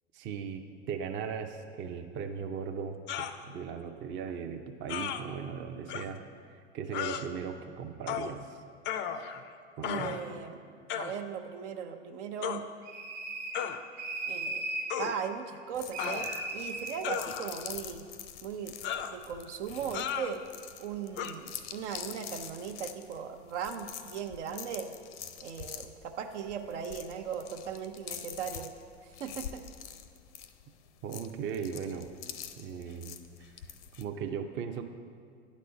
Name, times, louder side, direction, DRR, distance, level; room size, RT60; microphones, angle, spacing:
voice 1, 0.1-6.2 6.5-8.6 9.8-10.1 31.0-32.1 32.6-33.1 33.4-33.5 34.0-34.8, right 6 dB, 30° right, 5 dB, 0.6 m, -38 dB
sound 1, 3.1-3.4 4.9-5.2 5.9-6.1 6.9-7.2 8.1-8.3 8.8-9.5 9.8-10.3 10.9-11.2 12.4-12.6 13.5-13.8 14.9-15.1 16.0-16.5 17.0-17.7 18.8-19.2 19.9-20.3 21.2-21.3, left 9 dB, 30° left, 0.4 m, -35 dB
voice 2, 9.8-12.7 14.3-14.6 15.0-18.0 18.4-18.7 19.1-20.4 20.8-24.9 25.4-28.7 29.0-29.6, right 7 dB, 70° right, 6 dB, 0.8 m, -38 dB
sound 2, 12.8-13.7 14.0-14.9 15.9-17.0, right 2 dB, 50° right, 1.2 m, -36 dB
sound 3, 15.7-34.1, left 9 dB, 70° left, 0.7 m, -46 dB
9.2 x 4.2 x 6.5 m, 2.1 s
hypercardioid pair, 95°, 36 cm